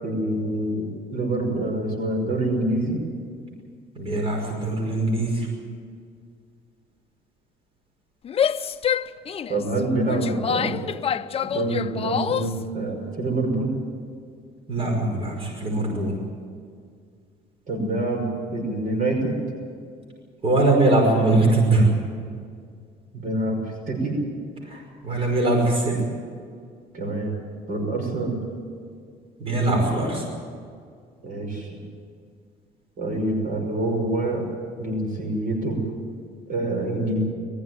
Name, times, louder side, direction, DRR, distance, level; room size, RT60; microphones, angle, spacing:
voice 1, 0.0-3.0 9.5-10.8 11.4-13.7 17.7-19.4 23.1-23.6 23.9-24.1 26.9-27.3 27.7-28.4 31.2-31.8 33.0-34.4 34.8-35.8 36.5-37.2, right 2 dB, 55° right, 1 dB, 6.0 m, -26 dB
voice 2, 4.0-5.5 14.7-16.1 20.4-21.9 24.6-26.0 29.4-30.2, right 2 dB, 35° right, 0 dB, 5.5 m, -21 dB
Female speech woman speaking / Yell, 8.2-12.6, left 8 dB, 35° left, 0.6 m, -26 dB
20.5 x 15.0 x 9.6 m, 2.1 s
cardioid pair, 110°, 17 cm